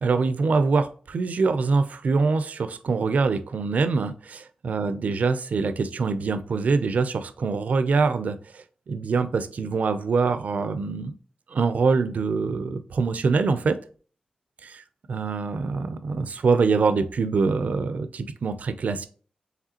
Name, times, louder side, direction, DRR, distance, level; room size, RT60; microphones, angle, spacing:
voice 1, 0.0-8.4 8.9-11.1 11.5-13.8 14.6-14.8 15.1-19.1, right 4 dB, 70° right, 11 dB, 0.4 m, -24 dB
4.9 x 3.2 x 2.8 m, 0.42 s
wide cardioid pair, 110°, 3 cm